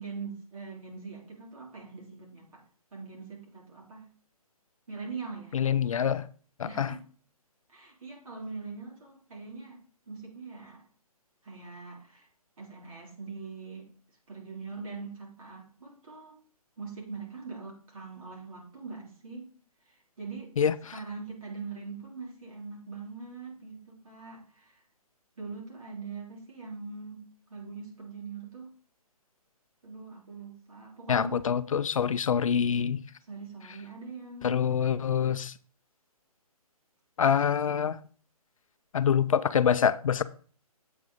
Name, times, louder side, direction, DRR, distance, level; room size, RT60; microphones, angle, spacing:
voice 1, 0.0-2.6 2.9-4.1 4.9-5.6 6.6-7.0 7.7-9.8 10.1-10.8 11.4-12.3 12.6-13.9 14.3-16.4 16.8-19.5 19.9-20.5 20.9-24.8 25.4-28.7 29.8-31.4 33.3-34.7, right 4 dB, 60° right, 3.2 m, -42 dB
voice 2, 5.5-6.2 6.6-6.9 20.6-20.7 31.1-33.0 34.4-35.5 37.2-38.0 38.9-40.2, left 8 dB, 60° left, 0.4 m, -25 dB
7.8 x 4.8 x 3.9 m
figure-of-eight pair, 140°, 20 cm